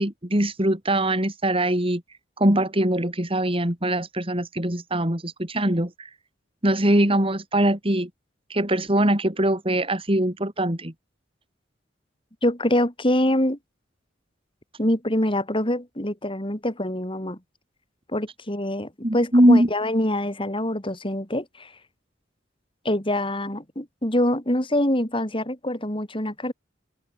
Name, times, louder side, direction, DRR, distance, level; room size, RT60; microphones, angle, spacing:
voice 1, 0.0-2.0 2.4-6.1 6.6-8.1 8.5-10.9 19.0-19.7, right 1 dB, 30° right, 4.0 m, -22 dB
voice 2, 12.4-13.6 14.8-17.4 18.1-21.7 22.8-26.5, left 1 dB, 30° left, 5.5 m, -25 dB
open air
head